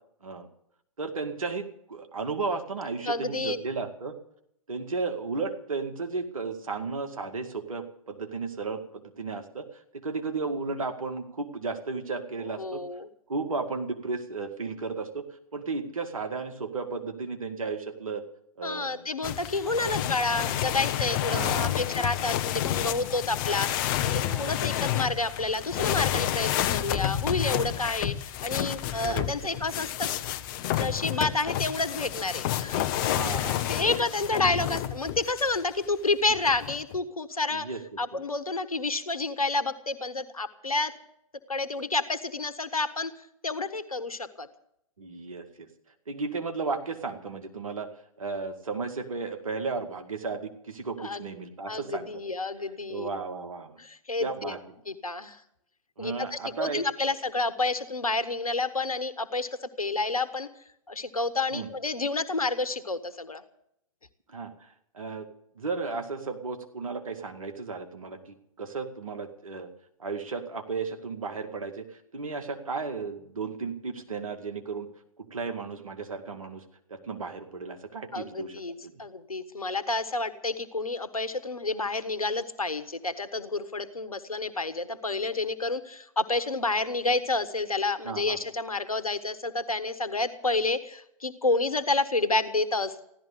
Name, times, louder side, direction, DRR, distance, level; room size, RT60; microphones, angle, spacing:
voice 1, 1.0-4.2 4.7-12.8 13.3-15.3 15.5-18.2 18.6-19.1 19.6-19.7 21.3-21.8 24.3-24.6 28.9-29.2 33.0-33.7 37.5-37.8 38.1-38.2 45.0-45.7 46.1-47.9 48.2-52.2 52.9-53.8 54.2-54.6 56.0-56.8 61.5-61.7 64.3-65.3 65.6-69.7 70.0-74.9 75.2-76.6 76.9-78.5 78.8-79.0 88.0-88.4, right 4 dB, 70° right, 5 dB, 2.1 m, -34 dB
voice 2, 3.1-3.6 12.6-13.1 18.6-30.1 30.7-32.9 33.3-37.7 38.0-40.9 41.5-43.1 43.4-44.5 51.0-51.3 51.7-53.1 53.8-54.5 54.9-55.4 56.0-60.5 60.9-63.4 78.1-78.7 79.0-93.0, left 3 dB, 85° left, 12 dB, 1.4 m, -29 dB
sound 1, 19.2-35.6 36.3-37.0, left 12 dB, 35° left, 0.9 m, -30 dB
15.5 x 12.5 x 6.8 m, 0.74 s
figure-of-eight pair, 115°, 18 cm